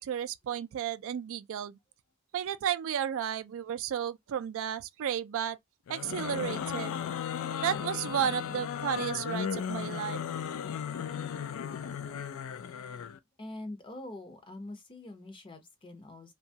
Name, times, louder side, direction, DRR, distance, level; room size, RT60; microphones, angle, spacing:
voice 1, 0.0-1.8 2.3-5.6 5.9-7.0 7.6-10.2, right 9 dB, 60° right, 0.3 m, -33 dB
sound 1, 5.9-13.2, left 8 dB, 65° left, 0.3 m, -36 dB
voice 2, 13.4-16.3, left 1 dB, 20° left, 0.6 m, -44 dB
2.8 x 2.2 x 2.7 m
head